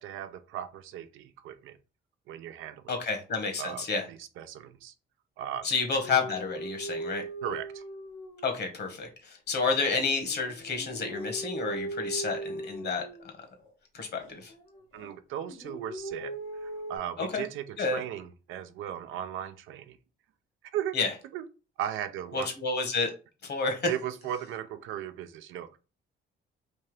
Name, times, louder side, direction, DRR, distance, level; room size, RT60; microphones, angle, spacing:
voice 1, 0.0-1.8 2.3-3.0 3.6-4.9 5.4-5.7 7.4-7.8 14.9-16.3 16.6-20.0 20.7-21.0 21.3-21.5 21.8-22.5 23.9-25.7, right 10 dB, 85° right, 0.5 m, -37 dB
voice 2, 2.9-4.1 5.6-7.2 8.4-13.0 13.4-13.5 13.9-14.5 17.2-17.4 17.8-18.0 20.9-21.1 22.3-23.1 23.4-23.9, left 4 dB, 55° left, 1.3 m, -30 dB
sound 1, 6.0-9.0 9.5-13.7 14.1-15.1 15.4-17.0, right 2 dB, 85° left, 1.3 m, -39 dB
3.4 x 2.8 x 3.2 m
cardioid pair, 90°, 20 cm